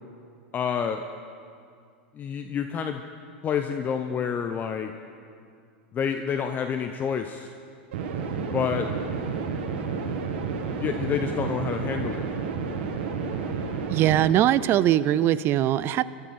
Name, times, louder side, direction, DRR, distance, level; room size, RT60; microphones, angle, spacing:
voice 1, 0.5-1.0 2.1-3.0 3.4-4.9 5.9-7.5 8.5-8.9 10.8-12.3, left 7 dB, 30° left, 7 dB, 0.8 m, -28 dB
sound 1, 7.9-14.3, right 5 dB, 65° right, 2.2 m, -30 dB
voice 2, 13.9-16.0, right 12 dB, 40° right, 16 dB, 0.5 m, -21 dB
25.5 x 12.5 x 4.3 m, 2.3 s
hypercardioid pair, 105°, 6 cm